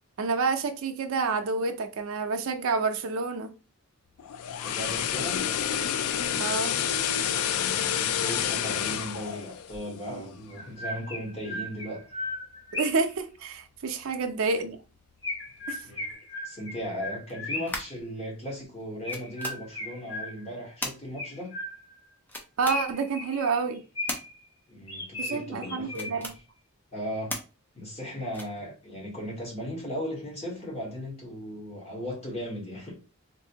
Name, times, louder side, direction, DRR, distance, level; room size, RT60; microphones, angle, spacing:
voice 1, 0.2-3.5 6.4-6.8 12.7-14.8 15.7-15.8 22.6-23.8 25.2-26.3, right 4 dB, 65° right, 0.4 m, -28 dB
sound 1, 4.2-10.4 10.7-10.9, left 9 dB, 80° left, 0.3 m, -29 dB
voice 2, 4.6-5.4 7.5-12.1 15.8-16.1 16.4-21.6 24.7-26.2 26.9-27.3 27.7-32.9, equal, 30° left, 1.3 m, -37 dB
Chirp tweet, 9.7-9.8 10.5-13.1 15.2-17.9 19.0-20.6 21.2-22.0 22.7-24.4 24.9-26.4, left 2 dB, 60° left, 1.7 m, -37 dB
sound 2, 17.3-18.1 18.8-18.9 19.1-19.6 20.8-21.0 22.3-22.8 24.1-24.2 25.8-26.4 27.3-27.4 28.3-28.6, left 1 dB, 10° left, 0.5 m, -35 dB
3.4 x 2.6 x 2.8 m
head